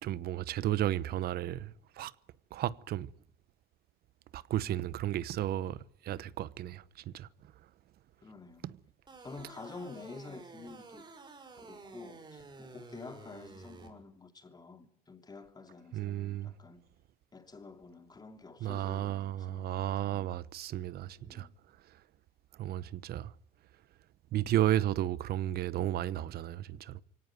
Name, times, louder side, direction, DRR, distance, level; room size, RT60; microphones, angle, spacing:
voice 1, 0.0-2.1 2.5-3.1 4.3-5.8 6.0-7.3 8.6-8.7 15.9-16.5 18.6-21.5 22.6-23.3 24.3-27.0, right 12 dB, 65° right, 1.0 m, -33 dB
voice 2, 8.2-8.7 9.2-11.1 11.6-16.8 17.3-20.4 21.2-21.6, left 3 dB, 25° left, 2.9 m, -49 dB
sound 1, 9.1-13.9, right 3 dB, 25° right, 6.0 m, -51 dB
24.0 x 18.0 x 9.5 m
cardioid pair, 110°, 17 cm